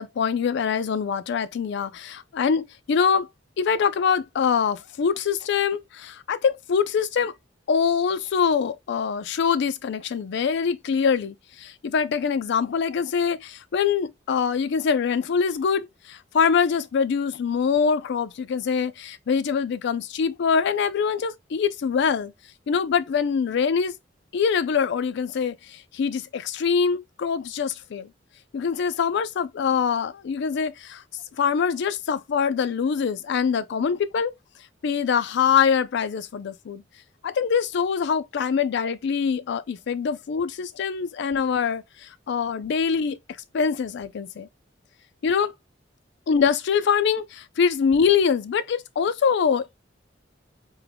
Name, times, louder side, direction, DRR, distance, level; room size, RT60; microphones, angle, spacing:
voice 1, 0.0-3.3 3.6-7.3 7.7-22.3 22.7-24.0 24.3-28.1 28.5-31.0 31.4-34.3 34.8-36.8 37.2-43.2 43.5-44.5 45.2-45.5 46.3-49.7, left 6 dB, 65° left, 0.4 m, -24 dB
3.6 x 2.2 x 3.3 m
head